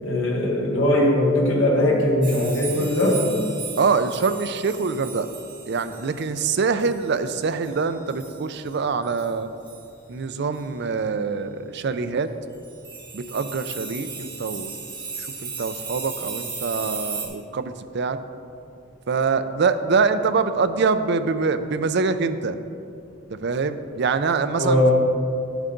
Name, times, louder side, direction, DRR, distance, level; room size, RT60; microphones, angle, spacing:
voice 1, 0.0-3.2 24.6-24.9, left 1 dB, 70° left, -3 dB, 1.8 m, -20 dB
sound 1, 2.2-8.4 8.7-8.8 9.0-9.3 9.7-9.8 10.5-10.6 12.5-17.3, right 5 dB, 25° right, 1.4 m, -36 dB
voice 2, 3.8-5.3 5.7-9.5 10.1-12.3 13.1-14.7 15.4-18.2 19.1-22.6 23.3-24.9, right 4 dB, 60° right, 11 dB, 0.5 m, -24 dB
10.5 x 8.0 x 3.8 m, 2.6 s
head